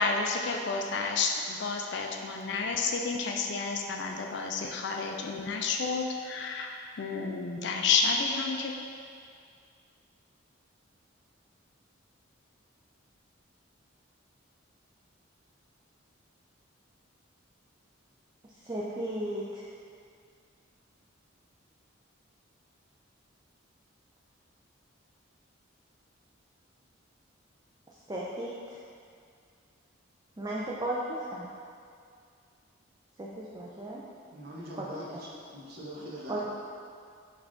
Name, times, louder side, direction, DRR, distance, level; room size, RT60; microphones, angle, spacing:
voice 1, 0.0-6.7 7.0-8.7, left 4 dB, 55° left, 2 dB, 0.3 m, -30 dB
voice 2, 18.5-19.7 27.9-28.8 30.4-31.5 33.2-34.0 34.7-35.2 36.3-36.4, right 1 dB, 20° right, -6 dB, 0.3 m, -35 dB
voice 3, 34.3-35.3 35.5-36.4, equal, 50° right, -4 dB, 0.8 m, -42 dB
5.5 x 2.4 x 3.6 m, 2.3 s
head